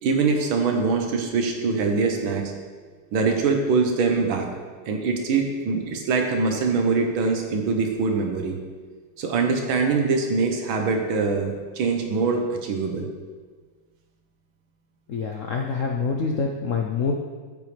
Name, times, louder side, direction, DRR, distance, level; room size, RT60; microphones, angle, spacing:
voice 1, 0.0-2.5 3.1-4.5 4.9-8.6 9.2-13.1, right 4 dB, 75° right, 3 dB, 1.8 m, -23 dB
voice 2, 15.1-17.1, left 5 dB, 75° left, 2 dB, 0.7 m, -26 dB
13.5 x 7.1 x 3.3 m, 1.5 s
omnidirectional pair, 2.2 m